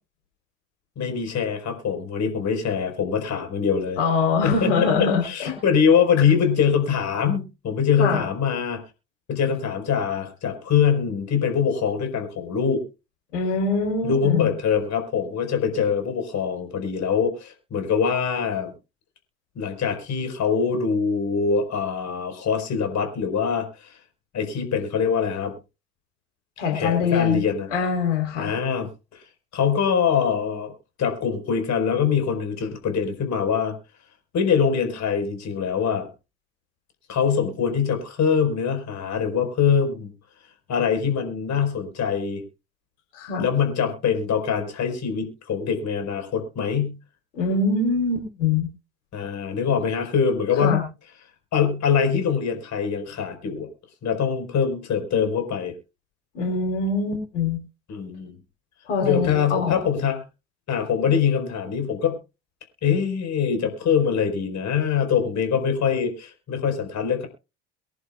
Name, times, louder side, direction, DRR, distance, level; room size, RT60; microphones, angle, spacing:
voice 1, 1.0-4.0 4.4-4.9 5.2-8.8 9.3-12.8 14.0-18.7 19.5-24.0 24.3-25.5 26.7-27.7 28.4-29.2 29.5-30.7 31.0-33.8 34.3-36.1 37.1-40.1 40.7-42.4 43.4-47.0 49.1-50.8 51.5-53.7 54.0-55.7 57.9-58.3 59.0-60.2 60.7-62.2 62.8-67.3, left 7 dB, 50° left, 6 dB, 4.8 m, -23 dB
voice 2, 4.0-5.5 8.0-8.2 13.3-14.5 26.6-27.4 27.7-28.5 43.1-43.4 47.3-48.7 50.6-50.8 56.3-57.6 58.9-59.8, left 4 dB, 80° left, 3 dB, 3.9 m, -23 dB
23.5 x 11.0 x 2.4 m, 0.29 s
figure-of-eight pair, 55°, 36 cm